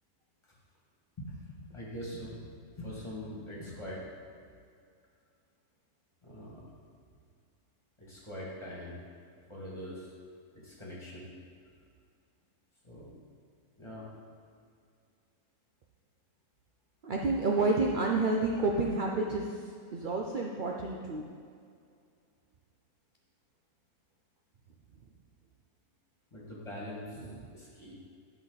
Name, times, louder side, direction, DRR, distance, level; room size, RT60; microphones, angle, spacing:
voice 1, 1.2-4.0 6.2-6.6 8.0-9.0 9.5-10.1 10.5-11.3 12.8-13.1 13.8-14.1 26.3-27.2 27.5-28.0, equal, 20° left, -6 dB, 2.2 m, -43 dB
voice 2, 17.0-19.5 19.9-21.2, right 3 dB, 60° right, -1 dB, 0.5 m, -29 dB
11.0 x 5.7 x 4.0 m, 2.3 s
omnidirectional pair, 1.6 m